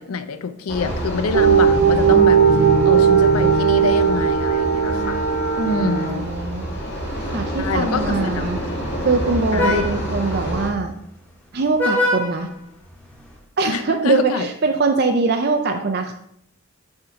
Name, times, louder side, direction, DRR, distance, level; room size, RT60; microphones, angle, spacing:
voice 1, 0.0-5.2 5.6-6.3 7.6-8.5 9.5-9.8 13.7-14.5, left 5 dB, 80° left, 11 dB, 0.5 m, -26 dB
sound 1, 0.7-10.7, right 2 dB, 50° left, 2.1 m, -26 dB
sound 2, 1.3-6.4, right 7 dB, 75° right, 0.8 m, -17 dB
Vehicle horn car horn honking, 5.4-13.4, left 1 dB, 5° left, 1.2 m, -30 dB
voice 2, 5.6-6.7 7.3-8.6 9.0-10.9 11.5-12.5 13.6-16.1, right 3 dB, 45° right, 5 dB, 0.5 m, -22 dB
7.0 x 3.8 x 5.7 m, 0.72 s
head